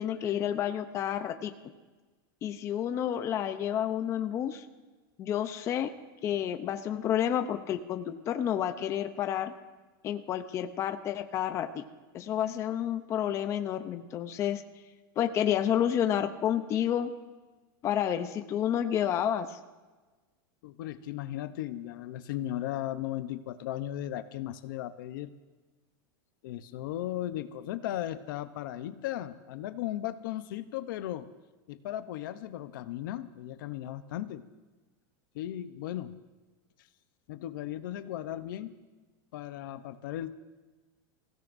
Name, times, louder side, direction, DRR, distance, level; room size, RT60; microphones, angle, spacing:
voice 1, 0.0-1.5 2.4-4.7 5.2-5.9 6.2-9.5 10.0-11.8 12.1-14.6 15.2-17.1 17.8-19.6, left 10 dB, 25° left, 8 dB, 0.6 m, -30 dB
voice 2, 20.6-25.3 26.4-31.3 31.7-34.4 35.3-36.2 37.3-38.7 39.3-40.3, left 13 dB, 65° left, 11 dB, 0.8 m, -36 dB
25.5 x 16.5 x 2.6 m, 1.2 s
supercardioid pair, 165°, 12 cm